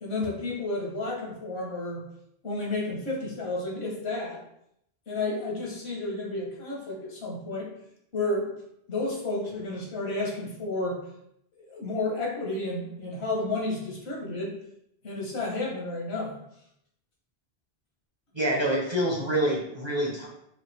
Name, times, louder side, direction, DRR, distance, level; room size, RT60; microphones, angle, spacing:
voice 1, 0.0-2.1 2.4-4.4 5.1-7.7 8.1-8.5 8.9-11.0 11.6-14.5 15.0-16.4, left 2 dB, 75° left, -2 dB, 1.4 m, -31 dB
voice 2, 18.3-20.3, right 1 dB, 30° right, -3 dB, 0.8 m, -26 dB
4.8 x 2.5 x 3.3 m, 0.75 s
omnidirectional pair, 1.1 m